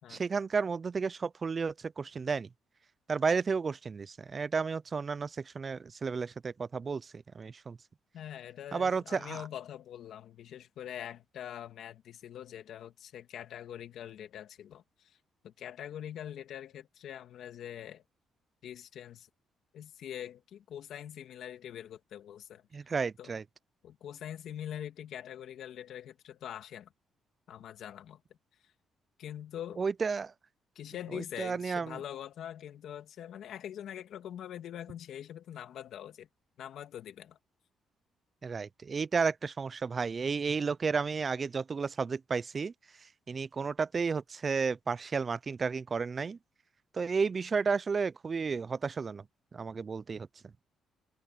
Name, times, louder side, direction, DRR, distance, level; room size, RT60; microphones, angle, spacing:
voice 1, 0.1-2.5 3.1-7.8 8.7-9.4 22.7-23.4 29.8-30.3 31.1-32.0 38.4-42.7 43.3-46.4 46.9-49.2 49.5-50.3, right 5 dB, 35° right, 0.4 m, -32 dB
voice 2, 8.1-15.2 15.4-18.0 18.6-19.3 19.7-22.6 23.2-23.4 23.8-26.9 27.5-28.2 29.2-29.8 30.8-36.3 36.6-37.4, left 10 dB, 75° left, 2.2 m, -44 dB
cardioid pair, 90°, 0 cm